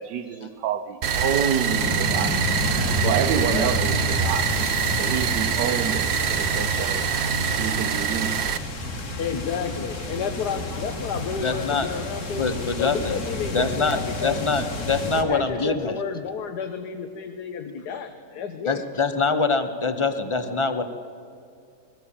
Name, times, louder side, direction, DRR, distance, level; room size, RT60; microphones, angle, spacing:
voice 1, 0.0-2.4 3.0-4.6 5.0-7.0 7.6-8.5, right 9 dB, 75° right, 6 dB, 1.3 m, -28 dB
sound 1, 1.0-8.6, right 7 dB, 60° right, 0.7 m, -25 dB
sound 2, 1.7-15.2, equal, 90° left, 4.2 m, -31 dB
sound 3, 2.2-15.2, left 3 dB, 45° left, 1.9 m, -36 dB
voice 2, 9.2-12.4 12.8-14.5 14.8-18.8, left 6 dB, 70° left, 6 dB, 1.6 m, -31 dB
voice 3, 11.4-11.9 12.3-13.1 13.5-16.0 18.6-20.8, left 4 dB, 20° left, 9 dB, 0.8 m, -24 dB
21.0 x 15.0 x 8.6 m, 2.4 s
omnidirectional pair, 1.9 m